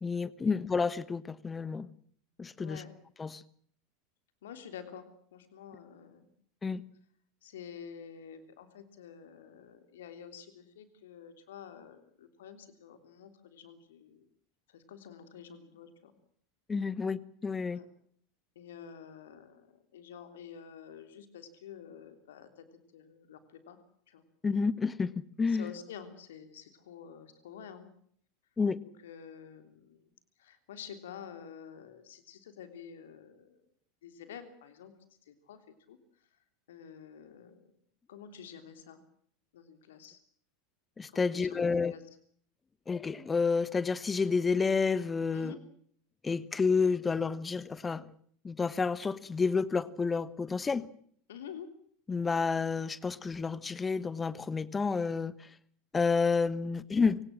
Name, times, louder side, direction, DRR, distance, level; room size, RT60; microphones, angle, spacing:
voice 1, 0.0-1.9 2.4-2.8 3.2-3.4 6.6-6.8 16.7-17.8 24.4-25.7 28.6-28.8 41.0-41.9 42.9-45.5 46.2-48.1 48.4-50.9 52.1-55.3 55.9-57.2, left 5 dB, 15° left, 1.1 m, -30 dB
voice 2, 2.6-2.9 4.4-6.3 7.4-14.3 14.7-16.1 17.7-17.9 18.5-22.6 22.9-23.8 24.1-24.2 25.5-27.9 29.0-30.1 30.4-33.6 34.0-34.9 35.2-36.0 36.7-37.7 38.1-39.0 39.5-40.2 41.1-42.0 45.3-45.6 51.3-51.7, left 8 dB, 65° left, 3.2 m, -49 dB
26.5 x 18.0 x 7.5 m
figure-of-eight pair, 80°, 0 cm